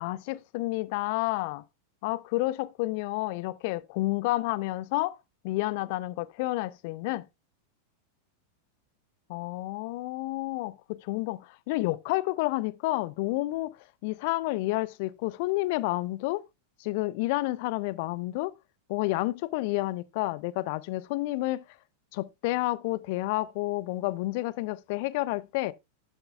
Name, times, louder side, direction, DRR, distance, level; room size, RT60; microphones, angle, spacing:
voice 1, 0.0-1.6 2.0-5.2 5.4-7.3 9.3-13.8 14.0-16.4 16.8-18.5 18.9-21.6 22.1-25.7, left 19 dB, 50° left, 0.5 m, -30 dB
11.0 x 7.8 x 2.3 m
figure-of-eight pair, 90°, 0 cm